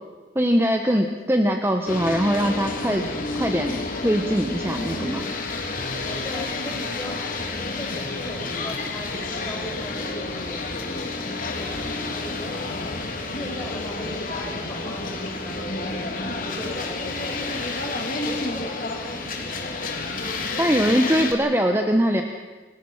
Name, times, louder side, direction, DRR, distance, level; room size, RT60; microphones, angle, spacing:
voice 1, 0.3-3.1 3.3-5.3 20.6-22.2, equal, 15° right, 4 dB, 1.2 m, -22 dB
sound 1, 1.9-21.3, left 3 dB, 50° left, 3.2 m, -30 dB
voice 2, 6.0-17.7 18.1-20.1, left 1 dB, 15° left, -1 dB, 5.8 m, -38 dB
28.5 x 20.5 x 5.8 m, 1.3 s
head